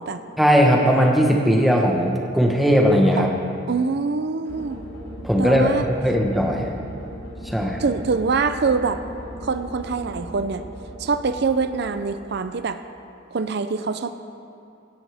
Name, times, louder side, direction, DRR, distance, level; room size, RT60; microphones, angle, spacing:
voice 1, 0.4-3.3 5.2-6.8 7.4-7.8, equal, ahead, -1 dB, 1.1 m, -18 dB
voice 2, 3.7-4.8 5.4-5.8 7.8-9.0 9.4-10.6 11.0-12.8 13.3-14.1, right 4 dB, 55° right, 10 dB, 0.5 m, -24 dB
sound 1, 4.4-12.6, equal, 55° left, 2.9 m, -38 dB
16.0 x 10.0 x 3.5 m, 2.5 s
head